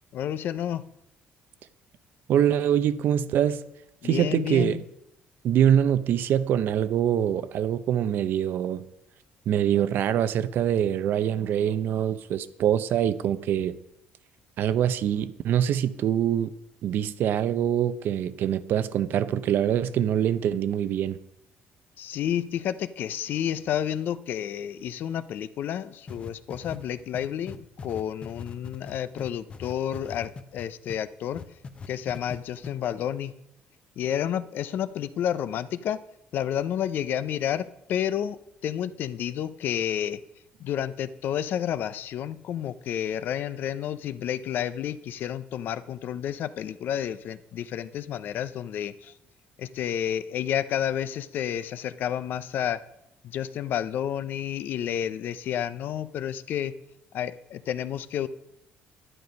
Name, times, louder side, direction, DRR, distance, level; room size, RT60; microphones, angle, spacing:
voice 1, 0.1-0.9 4.0-4.8 22.0-31.4 31.9-33.3 34.0-36.0 36.3-40.2 40.6-49.1 49.6-52.8 53.2-56.7 57.1-58.3, left 10 dB, 60° left, 0.6 m, -30 dB
voice 2, 2.3-3.6 4.0-4.8 5.4-8.8 9.5-13.8 14.6-16.5 16.8-21.2, right 10 dB, 60° right, 0.7 m, -24 dB
sound 1, 26.1-31.0 31.3-32.4 32.6-32.7, left 5 dB, 30° left, 0.9 m, -40 dB
11.0 x 11.0 x 5.3 m
cardioid pair, 145°, 4 cm